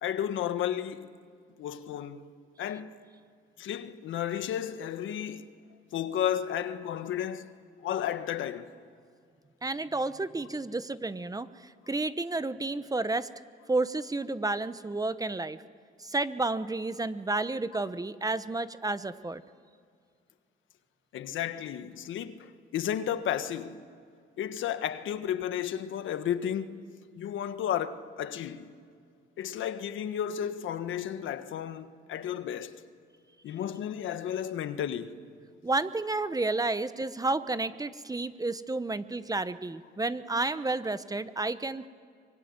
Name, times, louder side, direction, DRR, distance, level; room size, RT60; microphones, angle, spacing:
voice 1, 0.0-1.1 1.6-2.3 2.6-3.0 3.6-5.5 5.9-8.7 21.1-23.8 24.4-26.8 27.1-28.7 29.4-32.8 33.4-35.2, left 10 dB, 75° left, 1.5 m, -33 dB
voice 2, 9.6-13.3 13.7-15.6 16.0-19.4 35.6-41.9, right 2 dB, 20° right, 1.0 m, -31 dB
24.5 x 22.5 x 9.7 m
cardioid pair, 90°, 20 cm